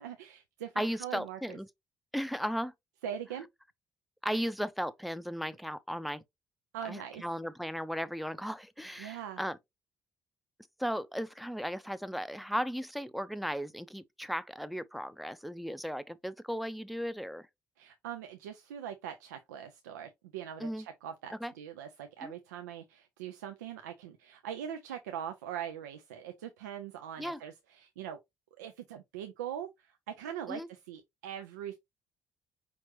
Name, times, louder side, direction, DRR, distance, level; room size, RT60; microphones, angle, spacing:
voice 1, 0.0-1.6 3.0-3.5 6.7-7.2 9.0-9.4 17.8-28.2 28.6-31.8, right 9 dB, 80° right, 0.4 m, -42 dB
voice 2, 0.8-1.7 2.1-2.7 4.2-6.2 6.8-9.6 10.8-17.5 20.6-20.9 21.4-21.5 22.2-22.3 27.2-27.4 30.5-30.7, equal, ahead, 0.5 m, -36 dB
5.1 x 2.9 x 2.9 m
figure-of-eight pair, 45°, 9 cm